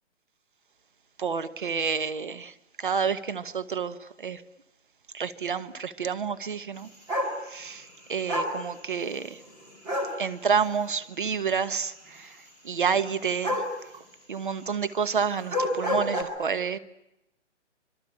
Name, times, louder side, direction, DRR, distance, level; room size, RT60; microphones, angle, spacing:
voice 1, 1.2-4.4 5.1-6.9 7.5-9.4 10.2-12.4 12.6-13.6 13.9-14.0 14.3-16.8, right 6 dB, 45° right, 1.2 m, -29 dB
sound 1, 7.1-7.4 8.3-8.6 9.9-10.2 13.4-13.7 15.4-16.2, left 1 dB, 10° right, 2.3 m, -27 dB
26.0 x 22.5 x 8.7 m
hypercardioid pair, 180°, 36 cm